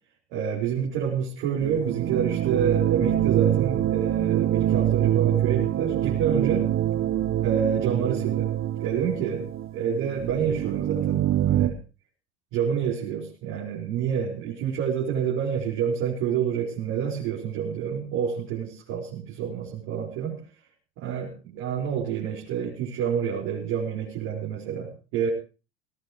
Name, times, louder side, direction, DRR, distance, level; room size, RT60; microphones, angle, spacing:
voice 1, 0.3-6.7 7.4-8.5 8.8-9.5 9.7-11.8 12.5-20.4 21.0-25.3, right 7 dB, 60° right, -4 dB, 5.4 m, -28 dB
sound 1, 1.6-11.7, right 12 dB, 35° right, 1.2 m, -25 dB
20.0 x 18.0 x 3.2 m, 0.33 s
figure-of-eight pair, 70°, 34 cm